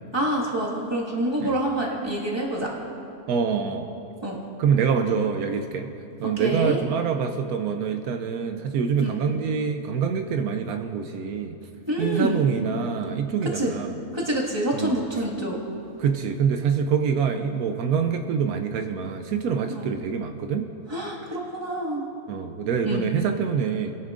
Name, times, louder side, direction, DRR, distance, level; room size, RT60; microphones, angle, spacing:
voice 1, 0.1-2.7 4.2-4.4 6.2-6.8 9.0-9.1 11.9-12.4 13.5-13.7 14.1-15.6 19.7-19.9 20.9-22.0 22.8-23.1, right 1 dB, 15° right, -4 dB, 1.7 m, -27 dB
voice 2, 3.3-3.9 4.6-5.9 6.2-11.6 12.0-14.0 14.7-15.0 16.0-20.7 22.3-23.9, right 6 dB, 80° right, 7 dB, 1.1 m, -25 dB
21.0 x 11.0 x 2.5 m, 2.7 s
omnidirectional pair, 1.6 m